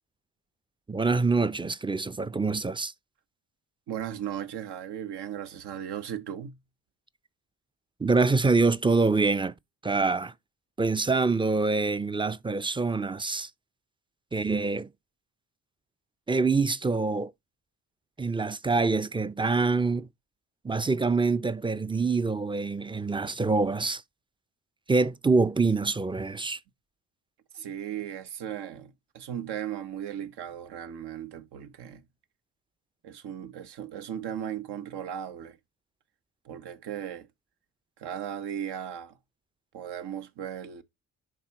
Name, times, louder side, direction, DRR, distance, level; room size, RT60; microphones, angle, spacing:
voice 1, 0.9-2.9 8.0-9.5 9.8-10.3 10.8-13.5 14.3-14.9 16.3-17.3 18.2-20.1 20.6-24.0 24.9-26.6, right 3 dB, 10° right, 0.6 m, -25 dB
voice 2, 3.9-6.6 27.5-32.0 33.0-35.6 36.4-37.3 38.0-39.2 39.7-40.8, right 9 dB, 65° right, 1.3 m, -37 dB
10.5 x 3.7 x 2.9 m
hypercardioid pair, 50°, 43 cm